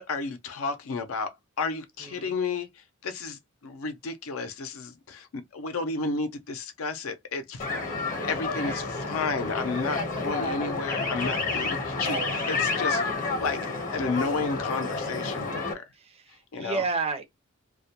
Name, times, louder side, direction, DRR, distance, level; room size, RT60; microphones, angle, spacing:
voice 1, 0.0-2.7 3.0-12.2 12.5-13.0 13.4-13.6 13.9-15.8 16.5-16.8, left 4 dB, 70° left, 0.5 m, -32 dB
voice 2, 2.0-2.3 8.1-8.5 11.9-12.4 15.9-17.2, right 5 dB, 30° right, 0.5 m, -33 dB
sound 1, 7.6-15.7, left 3 dB, 40° left, 0.8 m, -30 dB
2.2 x 2.1 x 2.8 m
head